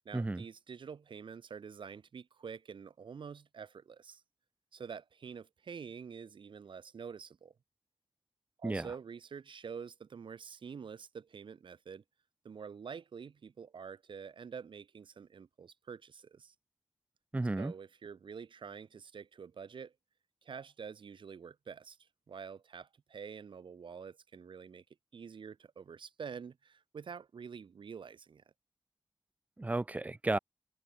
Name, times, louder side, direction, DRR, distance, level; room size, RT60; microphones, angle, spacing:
voice 1, 0.0-4.2 4.7-7.5 8.6-12.0 12.4-16.5 17.6-19.9 20.4-22.0 22.3-24.8 25.1-28.4, right 6 dB, 80° right, 1.1 m, -47 dB
voice 2, 17.3-17.7 29.6-30.4, right 2 dB, 20° right, 0.5 m, -33 dB
open air
wide cardioid pair, 115°, 8 cm